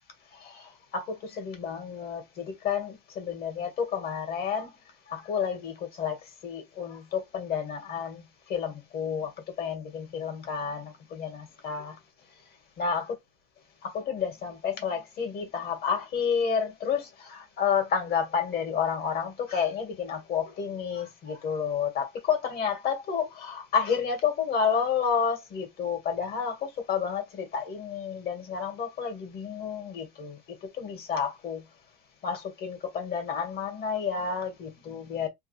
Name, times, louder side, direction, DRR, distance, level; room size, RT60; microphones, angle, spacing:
voice 1, 0.3-4.7 5.1-9.3 9.6-12.0 12.8-13.0 13.8-30.4 30.8-31.6 32.2-35.3, left 6 dB, 50° left, 1.7 m, -30 dB
3.3 x 2.4 x 3.2 m
supercardioid pair, 115°, 21 cm